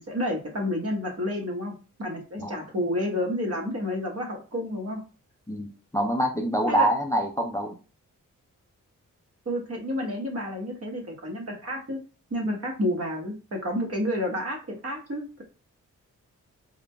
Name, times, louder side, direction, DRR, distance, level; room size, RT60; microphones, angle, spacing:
voice 1, 0.0-1.7 2.0-5.0 6.7-6.9 9.4-12.0 12.3-15.4, left 1 dB, 45° right, 0 dB, 1.3 m, -30 dB
voice 2, 5.9-7.7 12.5-12.6, right 1 dB, 10° left, 3 dB, 0.6 m, -25 dB
3.7 x 2.2 x 3.4 m, 0.34 s
cardioid pair, 70°, 33 cm